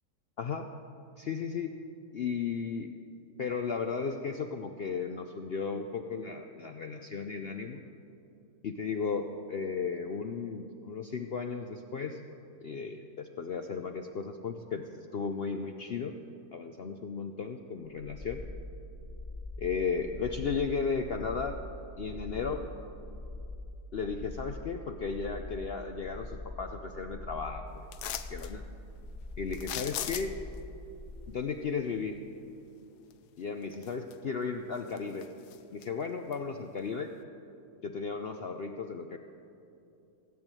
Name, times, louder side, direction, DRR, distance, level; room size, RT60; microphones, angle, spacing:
voice 1, 0.4-0.7 1.2-1.8 2.1-2.9 3.4-7.8 8.6-12.2 12.6-16.1 16.5-18.4 19.6-21.6 22.0-22.6 23.9-27.9 28.3-28.6 29.4-30.4 31.3-32.2 33.4-35.3 35.7-37.1 37.8-39.2, left 5 dB, 65° left, 6 dB, 0.6 m, -35 dB
sound 1, 17.9-31.2, left 2 dB, 35° left, 3.5 m, -43 dB
sound 2, 27.9-28.5 29.5-30.6 33.1-33.2 33.7-34.4 34.8-35.9 36.3-36.4, left 11 dB, 85° left, 1.3 m, -38 dB
17.0 x 8.0 x 9.0 m, 2.7 s
omnidirectional pair, 1.7 m